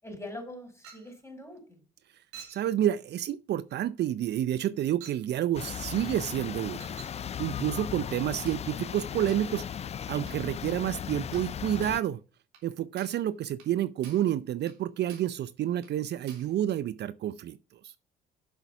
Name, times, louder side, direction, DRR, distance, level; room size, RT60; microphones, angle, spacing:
voice 1, 0.0-1.8 12.6-12.7, left 1 dB, 10° left, 5.4 m, -43 dB
Chink clink, 0.8-1.2 2.3-2.7 3.7-3.9 5.0-5.3 6.8-7.2 8.5-8.7 9.3-9.5 10.3-10.4 10.7-10.8 11.3-11.6 11.8-12.1 12.5-12.7 13.0-13.3 13.6-13.7 14.0-14.3 14.7-14.8 15.1-15.4 15.8-15.9 16.3-16.5, right 7 dB, 80° right, 3.1 m, -50 dB
voice 2, 2.5-6.8 7.4-9.7 10.1-12.2 12.6-17.6 17.8-17.9, right 11 dB, 55° right, 0.5 m, -29 dB
sound 1, 5.5-12.0, left 8 dB, 30° left, 0.4 m, -37 dB
8.1 x 7.0 x 5.8 m
hypercardioid pair, 60°, 21 cm